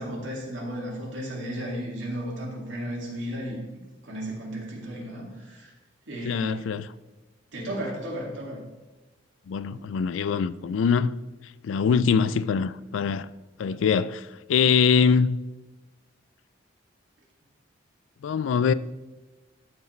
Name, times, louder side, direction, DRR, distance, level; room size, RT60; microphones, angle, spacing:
voice 1, 0.0-3.6 4.0-5.7 6.1-6.7 7.5-8.6 9.7-9.8, equal, 85° right, 2.3 m, -34 dB
voice 2, 6.3-6.9 9.5-11.1 11.6-13.3 13.6-14.2 14.5-15.4 18.2-18.7, left 6 dB, 85° left, 0.3 m, -23 dB
13.0 x 4.8 x 3.2 m
head